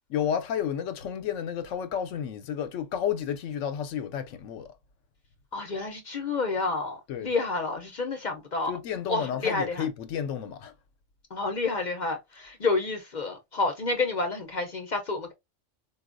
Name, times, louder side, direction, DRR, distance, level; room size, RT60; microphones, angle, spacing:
voice 1, 0.1-4.7 7.1-7.3 8.6-10.7, left 8 dB, 85° left, 0.9 m, -31 dB
voice 2, 5.5-8.7 9.1-9.8 11.3-15.3, left 3 dB, 45° left, 0.6 m, -29 dB
4.0 x 2.3 x 2.5 m
omnidirectional pair, 1.3 m